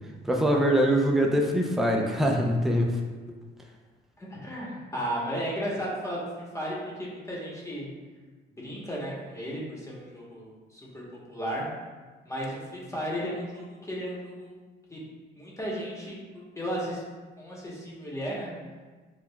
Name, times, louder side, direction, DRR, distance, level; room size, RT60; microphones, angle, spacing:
voice 1, 0.2-3.0, equal, ahead, 0 dB, 0.5 m, -23 dB
voice 2, 4.2-7.9 8.6-11.0 11.3-11.6 12.2-14.6 14.9-15.0 15.3-17.0 17.4-18.5, equal, 15° left, -5 dB, 1.1 m, -34 dB
6.1 x 2.3 x 2.3 m, 1.4 s
cardioid pair, 90°, 20 cm